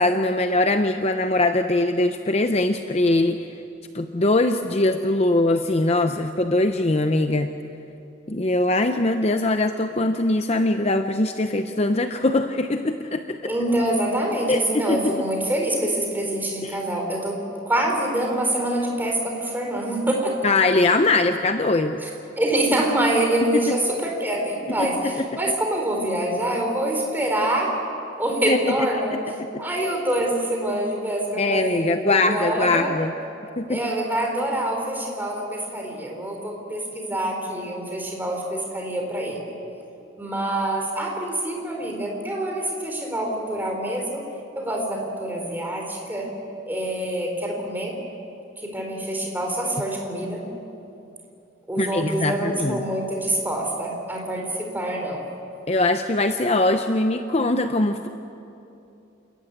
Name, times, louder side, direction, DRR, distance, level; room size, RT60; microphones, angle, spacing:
voice 1, 0.0-3.5 3.9-7.5 8.3-13.5 14.5-15.1 16.6-16.8 20.4-22.0 23.5-23.8 24.8-24.9 25.2-25.3 28.5-28.7 29.1-29.2 31.4-33.1 33.6-33.8 51.8-52.8 55.7-58.1, left 2 dB, 30° left, 7 dB, 0.6 m, -22 dB
voice 2, 13.4-20.4 22.0-22.1 22.4-27.8 28.2-29.2 29.6-32.9 33.7-39.4 40.2-44.2 44.6-46.3 46.7-47.9 48.6-50.4 51.7-55.2, right 1 dB, 10° right, 0 dB, 3.8 m, -25 dB
28.5 x 14.5 x 9.4 m, 2.8 s
head